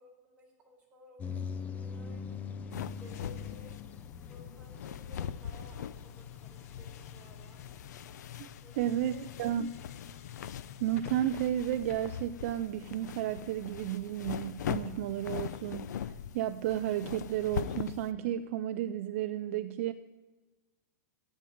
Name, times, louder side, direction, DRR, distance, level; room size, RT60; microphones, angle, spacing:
voice 1, 0.0-4.0 4.3-7.6 8.6-9.5, equal, 15° right, -3 dB, 4.1 m, -57 dB
sound 1, 1.2-8.2, left 6 dB, 15° left, 0.6 m, -44 dB
sound 2, 2.3-12.0, left 9 dB, 60° left, 1.0 m, -50 dB
sound 3, 2.7-18.1, left 9 dB, 80° left, 0.6 m, -42 dB
voice 2, 8.8-9.7 10.8-19.9, right 11 dB, 50° right, 12 dB, 0.5 m, -32 dB
13.5 x 9.3 x 9.3 m, 1.2 s
supercardioid pair, 160°, 9 cm